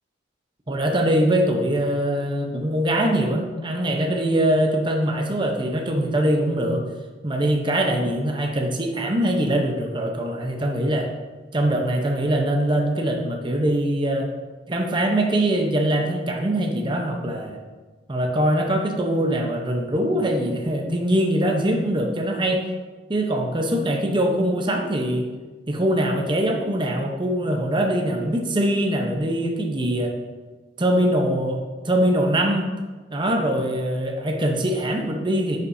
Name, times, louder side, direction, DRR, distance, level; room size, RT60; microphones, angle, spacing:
voice 1, 0.7-6.8 7.2-11.1 11.5-14.3 14.7-17.6 18.1-22.6 23.1-25.3 25.7-30.1 30.8-32.7 33.1-35.6, right 1 dB, 25° right, 2 dB, 0.8 m, -22 dB
9.5 x 7.0 x 2.7 m, 1.3 s
head